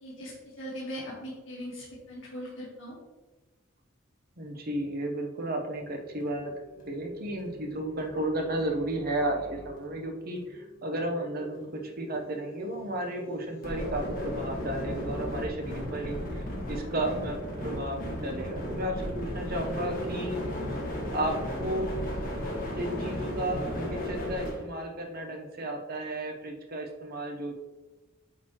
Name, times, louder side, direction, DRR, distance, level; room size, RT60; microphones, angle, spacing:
voice 1, 0.0-3.0, equal, 70° left, -6 dB, 1.7 m, -40 dB
voice 2, 4.4-6.5 6.9-9.4 9.6-20.4 21.1-21.9 22.8-27.5, right 1 dB, 45° right, 3 dB, 0.9 m, -33 dB
sound 1, 5.7-24.6, equal, 45° left, 1.6 m, -36 dB
8.7 x 4.1 x 3.0 m, 1.2 s
head